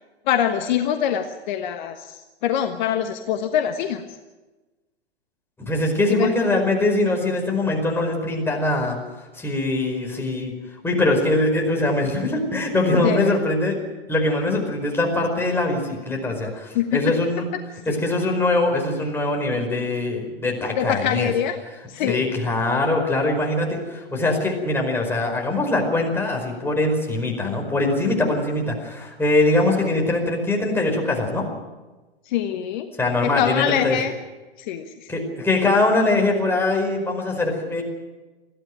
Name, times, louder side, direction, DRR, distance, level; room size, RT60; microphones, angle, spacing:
voice 1, 0.3-4.2 6.1-6.3 13.0-13.4 16.7-17.1 17.9-18.0 20.8-21.6 21.9-22.4 32.2-32.9 33.2-34.1 34.6-35.1, left 9 dB, 50° left, 7 dB, 1.4 m, -24 dB
voice 2, 5.7-9.0 9.4-10.5 10.8-13.8 14.1-17.4 17.8-21.3 22.0-31.4 33.0-34.0 35.1-37.8, left 2 dB, 5° left, 0 dB, 4.9 m, -22 dB
21.0 x 15.0 x 9.1 m, 1.2 s
figure-of-eight pair, 110°, 31 cm